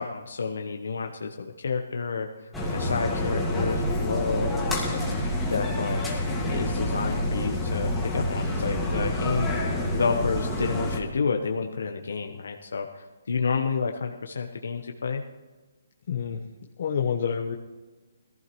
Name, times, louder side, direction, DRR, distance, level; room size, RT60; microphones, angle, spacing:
voice 1, 0.0-4.5 4.9-5.1 5.5-6.0 6.5-9.5 9.9-15.2, left 5 dB, 80° left, 3 dB, 1.0 m, -30 dB
sound 1, 2.5-11.0, left 1 dB, 5° left, 1.9 m, -27 dB
voice 2, 16.1-16.4 16.8-17.6, left 7 dB, 50° left, -1 dB, 1.0 m, -27 dB
17.5 x 15.0 x 3.1 m, 1.3 s
hypercardioid pair, 160°, 0 cm